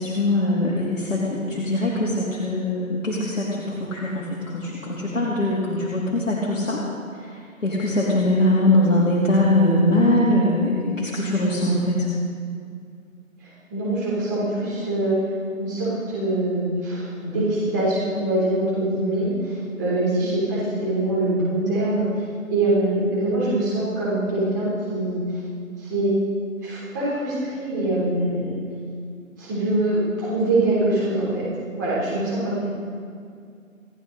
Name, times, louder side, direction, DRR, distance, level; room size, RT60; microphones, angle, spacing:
voice 1, 0.0-6.8 7.1-12.1 32.4-32.6, left 1 dB, 65° left, -6 dB, 3.2 m, -22 dB
voice 2, 13.7-15.2 15.5-22.2 22.5-25.2 25.8-26.1 26.6-28.5 29.4-31.5 31.8-32.6, right 1 dB, 15° right, -7 dB, 3.4 m, -23 dB
28.5 x 10.0 x 4.0 m, 2.2 s
figure-of-eight pair, 170°, 41 cm